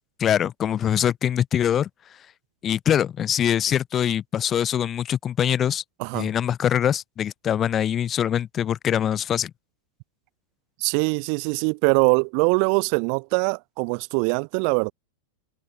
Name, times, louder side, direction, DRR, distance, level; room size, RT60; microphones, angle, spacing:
voice 1, 0.2-1.9 2.6-5.8 6.1-9.5, left 9 dB, 25° left, 1.3 m, -23 dB
voice 2, 6.0-6.3 10.8-14.9, right 40 dB or more, 45° right, 0.9 m, -22 dB
figure-of-eight pair, 90°, 0 cm